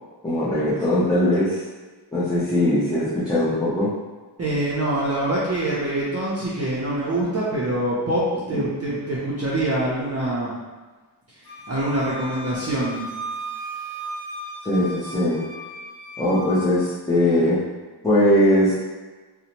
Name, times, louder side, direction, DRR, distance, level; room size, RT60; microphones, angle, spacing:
voice 1, 0.2-1.6 2.1-3.9 8.5-8.7 14.6-15.5 16.2-17.7 18.0-18.8, left 1 dB, 10° left, -12 dB, 0.6 m, -20 dB
voice 2, 4.4-10.5 11.7-13.0, right 1 dB, 35° right, -8 dB, 0.5 m, -24 dB
Wind instrument woodwind instrument, 11.4-16.7, right 1 dB, 45° left, 1.0 m, -36 dB
2.6 x 2.1 x 2.9 m, 1.3 s
wide cardioid pair, 130°, 42 cm